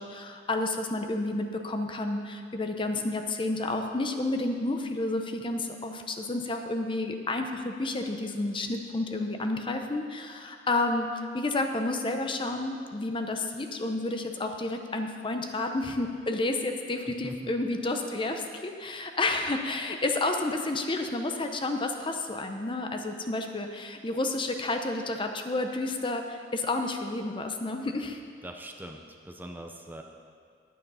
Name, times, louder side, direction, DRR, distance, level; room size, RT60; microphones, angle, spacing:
voice 1, 0.0-11.1 11.3-28.2, left 2 dB, 30° left, 5 dB, 0.7 m, -30 dB
voice 2, 17.0-17.4 28.4-30.0, right 1 dB, 10° right, 2 dB, 0.6 m, -42 dB
10.5 x 9.4 x 5.5 m, 2.1 s
head